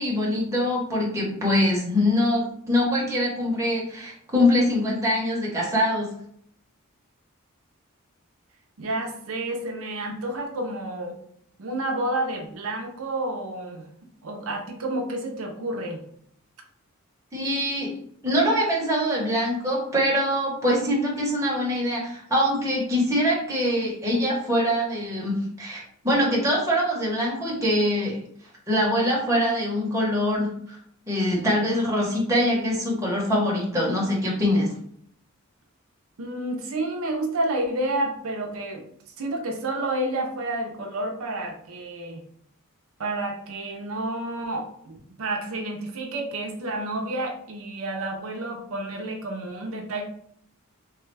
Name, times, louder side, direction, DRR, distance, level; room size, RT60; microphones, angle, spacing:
voice 1, 0.0-6.1 17.3-17.9 18.2-28.2 28.7-30.8 31.1-34.7, equal, 15° right, -4 dB, 0.9 m, -23 dB
voice 2, 8.8-11.2 11.6-13.9 14.2-16.0 36.2-38.8 39.2-42.2 43.0-50.0, right 1 dB, 75° right, 1 dB, 0.6 m, -30 dB
3.2 x 2.3 x 3.2 m, 0.66 s
head